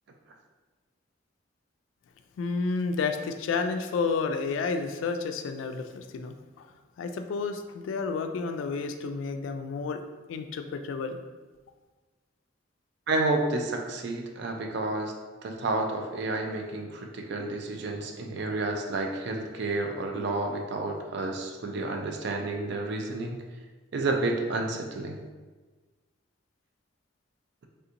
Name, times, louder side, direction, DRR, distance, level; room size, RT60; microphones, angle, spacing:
voice 1, 2.4-6.7 7.0-10.0 10.3-11.2, left 4 dB, 85° left, 7 dB, 0.3 m, -31 dB
voice 2, 13.1-15.1 15.4-23.4 23.9-25.2, right 2 dB, 60° right, 3 dB, 0.4 m, -30 dB
3.4 x 2.8 x 2.5 m, 1.3 s
head